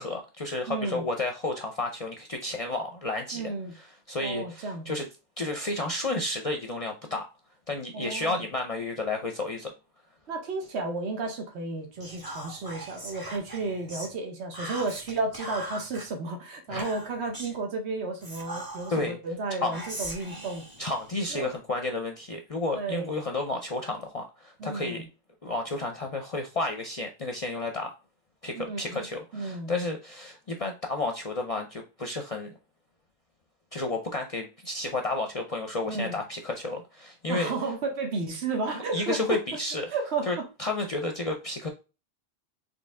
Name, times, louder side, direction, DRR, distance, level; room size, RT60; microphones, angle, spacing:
voice 1, 0.0-5.1 5.4-7.3 7.7-9.7 16.7-16.8 18.9-19.2 19.6-19.8 20.8-25.0 25.4-27.9 28.4-32.6 33.7-37.5 38.9-39.9 40.3-41.7, left 2 dB, 45° left, 0.5 m, -31 dB
voice 2, 0.7-1.0 3.3-3.7 4.2-4.9 7.9-8.5 10.3-20.6 21.3-21.5 22.7-23.1 24.6-25.0 28.5-29.0 29.3-29.7 35.8-36.2 37.3-39.4 39.9-40.5, right 3 dB, 85° right, 1.2 m, -33 dB
Whispering, 12.0-14.1 14.5-16.1 16.8-17.6 18.2-19.1 19.7-21.6, right 1 dB, 20° right, 1.1 m, -40 dB
4.4 x 3.2 x 3.5 m
omnidirectional pair, 1.1 m